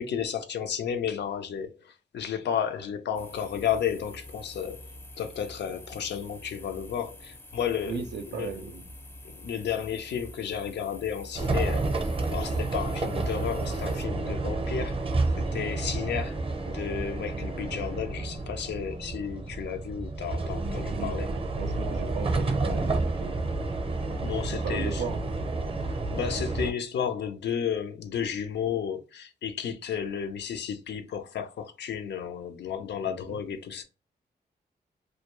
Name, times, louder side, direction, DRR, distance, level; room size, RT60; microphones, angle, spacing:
voice 1, 0.0-8.0 8.3-8.6 9.2-15.0 15.4-16.4 16.7-21.3 24.2-25.0 26.1-33.8, left 8 dB, 85° left, 0.5 m, -32 dB
sound 1, 3.2-14.1, left 1 dB, 15° left, 0.4 m, -47 dB
voice 2, 7.9-8.9 20.9-23.4 24.6-25.2 33.0-33.4, right 6 dB, 85° right, 0.4 m, -37 dB
sound 2, 11.3-26.7, right 2 dB, 30° right, 0.5 m, -30 dB
2.2 x 2.2 x 2.9 m
cardioid pair, 70°, 18 cm